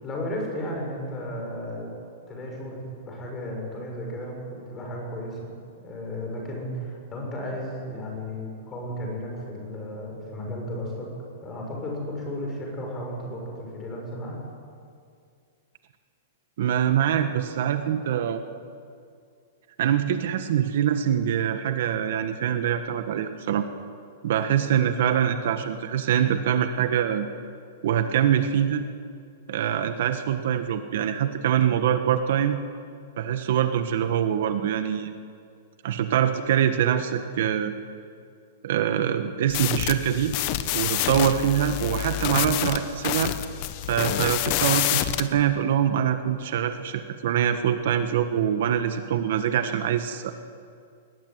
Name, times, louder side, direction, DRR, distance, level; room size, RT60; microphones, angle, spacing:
voice 1, 0.0-1.9 2.3-5.6 5.8-11.1 11.4-14.4, left 1 dB, 15° left, 0 dB, 6.8 m, -34 dB
voice 2, 16.6-18.4 19.8-23.6 24.2-27.3 27.8-28.8 29.5-32.6 33.2-35.1 35.8-37.7 38.6-40.3 40.7-43.3 43.9-50.3, right 9 dB, 55° right, 8 dB, 1.5 m, -24 dB
sound 1, 39.5-45.3, left 14 dB, 35° left, 1.1 m, -27 dB
22.0 x 20.5 x 9.5 m, 2.3 s
supercardioid pair, 170°, 0 cm